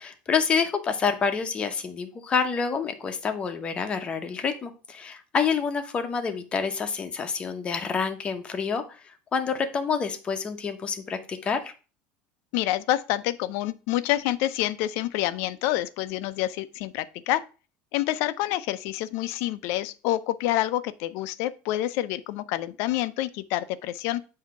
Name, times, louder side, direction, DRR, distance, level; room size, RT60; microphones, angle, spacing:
voice 1, 0.0-9.0 9.3-11.7, left 6 dB, 20° left, 0.8 m, -28 dB
voice 2, 12.5-17.4 17.9-24.2, left 14 dB, 60° left, 0.5 m, -27 dB
8.1 x 2.8 x 5.8 m
cardioid pair, 155°, 5 cm